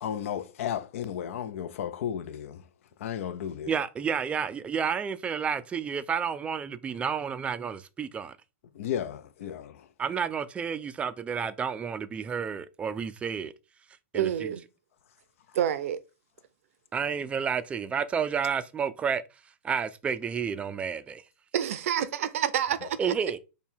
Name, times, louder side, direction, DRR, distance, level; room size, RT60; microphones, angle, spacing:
voice 1, 0.0-2.6 3.0-3.7 8.8-9.8, left 9 dB, 65° left, 0.5 m, -33 dB
voice 2, 3.7-8.4 10.0-13.5 14.1-14.5 16.9-19.2 19.6-21.2 23.0-23.4, right 6 dB, 15° right, 0.4 m, -30 dB
voice 3, 14.1-14.6 15.5-16.0 21.5-23.2, right 10 dB, 70° right, 0.6 m, -28 dB
5.3 x 2.3 x 4.4 m
hypercardioid pair, 135°, 8 cm